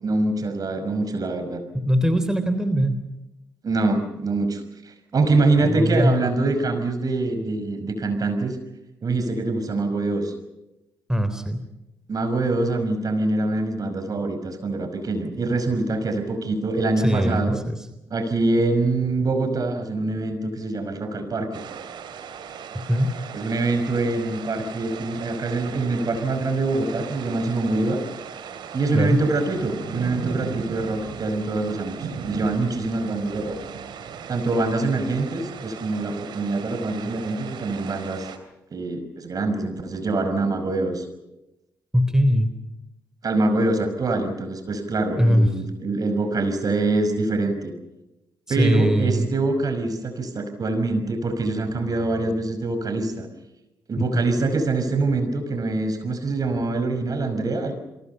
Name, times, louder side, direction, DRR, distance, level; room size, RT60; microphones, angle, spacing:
voice 1, 0.0-1.6 3.6-8.6 9.0-10.3 12.1-17.6 18.1-21.6 23.3-28.0 28.7-33.6 34.3-38.3 38.7-41.1 43.2-47.7 48.5-53.3 53.9-57.7, right 2 dB, 45° right, 8 dB, 5.5 m, -24 dB
voice 2, 1.7-3.0 5.6-6.2 11.1-11.6 17.0-17.8 22.9-23.1 28.9-29.2 41.9-42.5 45.2-45.5 48.5-49.3 54.1-54.2, equal, 5° right, 10 dB, 3.6 m, -21 dB
sound 1, 21.5-38.4, right 7 dB, 65° right, 3.0 m, -37 dB
29.0 x 23.0 x 5.6 m, 0.95 s
hypercardioid pair, 45°, 8 cm